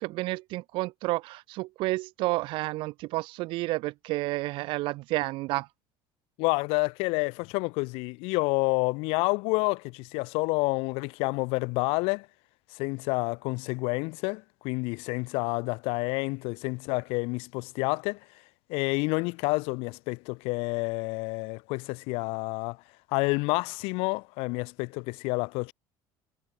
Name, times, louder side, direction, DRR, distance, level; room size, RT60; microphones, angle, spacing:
voice 1, 0.0-5.7, right 20 dB, 60° right, 0.6 m, -30 dB
voice 2, 6.4-12.3 12.7-18.2 18.7-22.8 23.1-25.7, left 27 dB, 75° left, 0.9 m, -29 dB
cardioid pair, 170°, 10 cm